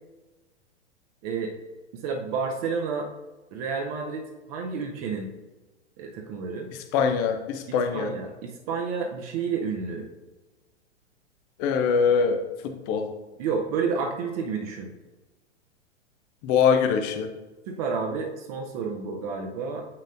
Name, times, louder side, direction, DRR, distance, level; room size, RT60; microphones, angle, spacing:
voice 1, 1.2-1.5 2.0-3.1 3.5-5.3 6.0-6.7 7.7-10.1 13.4-14.9 17.7-19.9, right 5 dB, 35° right, 2 dB, 0.6 m, -30 dB
voice 2, 6.9-8.1 11.6-13.1 16.4-17.3, left 6 dB, 20° left, 7 dB, 0.3 m, -23 dB
7.3 x 5.7 x 2.5 m, 1.2 s
figure-of-eight pair, 105°, 36 cm